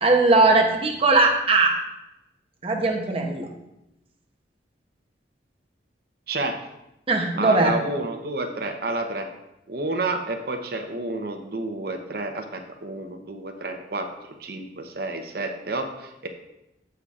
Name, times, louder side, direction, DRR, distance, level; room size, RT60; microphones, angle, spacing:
voice 1, 0.0-1.7 2.6-3.5 7.1-7.7, right 3 dB, 30° right, 2 dB, 0.8 m, -19 dB
voice 2, 7.4-9.3 9.7-14.1 14.4-16.3, right 2 dB, 55° right, 4 dB, 0.8 m, -29 dB
15.0 x 5.7 x 2.5 m, 0.89 s
head